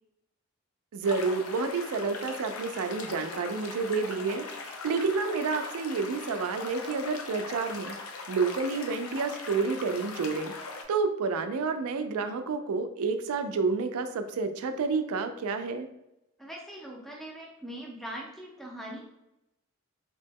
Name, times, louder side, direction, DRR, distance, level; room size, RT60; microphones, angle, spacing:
voice 1, 0.9-7.9 8.3-15.9, right 4 dB, 75° right, 8 dB, 0.3 m, -30 dB
sound 1, 1.0-10.8, left 4 dB, 70° left, 0.5 m, -40 dB
voice 2, 16.4-19.1, right 1 dB, ahead, -2 dB, 0.4 m, -41 dB
2.9 x 2.1 x 3.4 m, 0.86 s
head